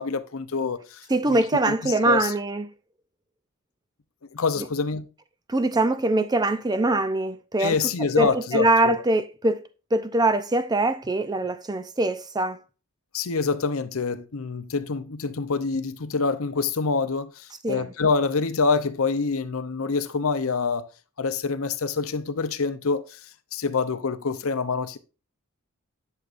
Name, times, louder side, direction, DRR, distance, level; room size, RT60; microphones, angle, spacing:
voice 1, 0.0-1.4 1.8-2.3 4.3-5.1 7.6-9.0 13.1-20.9 21.2-23.2 23.5-25.0, left 4 dB, 65° left, 0.7 m, -26 dB
voice 2, 1.1-2.7 4.6-4.7 5.5-7.8 8.2-9.6 9.9-12.6 17.6-17.9, right 2 dB, 20° right, 0.6 m, -23 dB
11.0 x 6.6 x 2.6 m
head